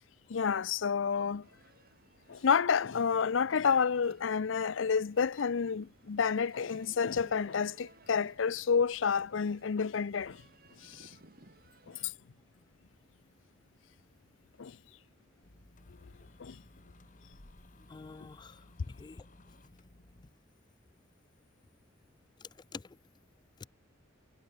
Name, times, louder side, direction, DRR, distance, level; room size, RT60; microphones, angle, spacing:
voice 1, 0.3-1.4 2.3-10.4 14.6-14.7 16.4-16.5, left 6 dB, 70° left, 0.5 m, -29 dB
sound 1, 1.4-12.1, right 2 dB, 50° right, 3.7 m, -61 dB
sound 2, 15.4-20.3, left 1 dB, 40° left, 1.7 m, -58 dB
voice 2, 17.9-19.3 22.4-23.0 23.6-23.7, left 4 dB, 20° left, 0.3 m, -47 dB
head